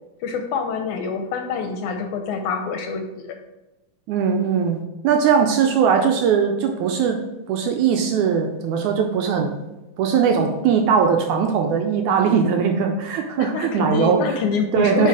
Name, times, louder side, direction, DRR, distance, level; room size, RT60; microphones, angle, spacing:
voice 1, 0.2-3.4 13.4-15.1, left 5 dB, 75° left, 6 dB, 1.9 m, -26 dB
voice 2, 4.1-4.8 5.0-7.2 7.5-9.5 10.0-14.4 14.7-15.1, right 6 dB, 80° right, 4 dB, 1.8 m, -20 dB
8.4 x 4.0 x 4.7 m, 1.0 s
omnidirectional pair, 3.8 m